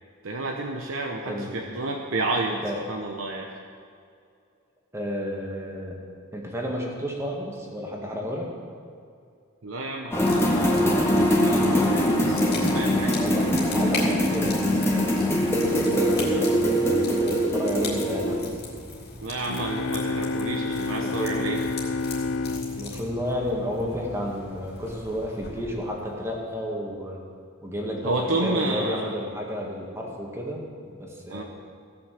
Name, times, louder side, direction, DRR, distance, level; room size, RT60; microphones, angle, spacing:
voice 1, 0.2-2.6 2.9-3.5 9.6-11.0 11.4-13.1 19.2-21.6 28.0-29.1 31.3-31.4, right 2 dB, 85° right, 1 dB, 1.0 m, -30 dB
voice 2, 1.3-1.7 2.5-2.8 3.5-3.6 4.9-6.0 6.3-8.5 13.0-18.4 21.0-21.4 22.8-27.2 27.6-31.4, equal, 15° right, -1 dB, 1.9 m, -32 dB
sound 1, 10.1-18.4, equal, 15° left, 1.7 m, -22 dB
sound 2, 10.3-26.5, left 3 dB, 50° left, 2.9 m, -39 dB
sound 3, 19.5-24.1, left 3 dB, 80° left, 0.5 m, -30 dB
16.5 x 6.2 x 7.7 m, 2.4 s
head